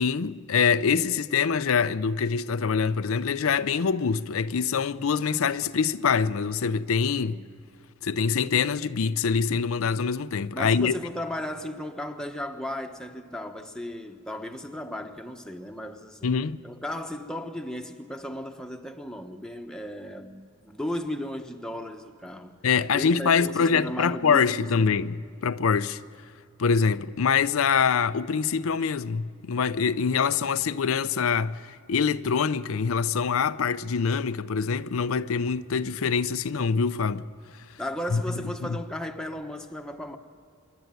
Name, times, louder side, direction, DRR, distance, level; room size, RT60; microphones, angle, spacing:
voice 1, 0.0-7.4 8.0-10.9 16.2-16.6 22.6-26.0 26.6-37.3 38.1-38.2, left 6 dB, 90° left, 0.5 m, -24 dB
voice 2, 7.1-7.6 10.5-16.3 16.6-22.5 22.9-25.0 37.8-40.2, left 1 dB, 5° left, 1.1 m, -35 dB
25.0 x 11.5 x 9.2 m
head